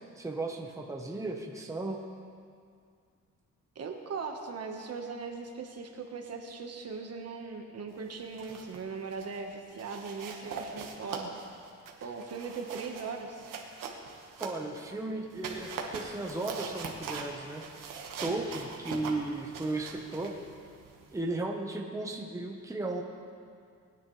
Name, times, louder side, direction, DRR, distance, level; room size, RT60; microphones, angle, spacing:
voice 1, 0.2-2.0 14.4-17.6 18.2-20.3 21.1-23.0, right 2 dB, 10° right, 1 dB, 1.1 m, -35 dB
voice 2, 3.7-11.3 12.0-13.5, right 4 dB, 50° right, 3 dB, 1.4 m, -39 dB
sound 1, 8.2-8.8 9.1-9.4 9.8-14.9 15.3-21.2, right 5 dB, 75° right, 1.6 m, -42 dB
20.5 x 9.8 x 3.3 m, 2.2 s
cardioid pair, 110°, 32 cm